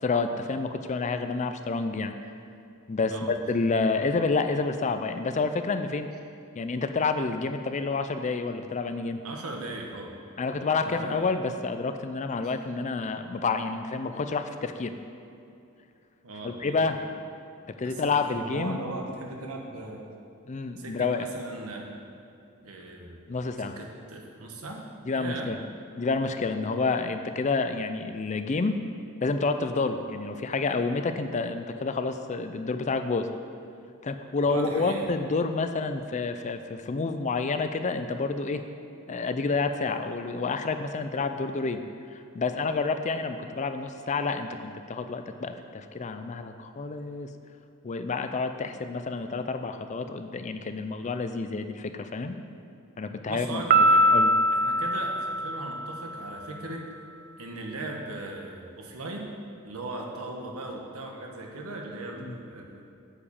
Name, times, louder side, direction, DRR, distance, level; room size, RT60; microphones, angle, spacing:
voice 1, 0.0-2.1 2.9-6.1 6.6-9.2 10.4-14.9 16.4-17.1 17.7-18.8 20.5-21.3 23.3-23.8 25.1-25.6 26.0-28.8 29.2-33.3 34.0-38.6 39.1-41.8 42.1-47.3 47.8-52.4 53.0-53.6 54.1-54.3 62.2-62.4, left 4 dB, 35° left, 8 dB, 0.4 m, -29 dB
voice 2, 9.2-10.1 10.8-11.3 16.2-16.9 17.8-20.1 20.8-21.9 22.6-23.2 23.6-24.8 25.1-25.5 34.5-35.1 53.3-54.2 54.5-56.8 57.4-59.3 59.6-62.8, right 2 dB, 85° right, 1 dB, 1.3 m, -38 dB
Piano, 53.7-56.3, right 1 dB, 45° right, 0.3 m, -22 dB
8.6 x 5.0 x 7.1 m, 2.6 s
head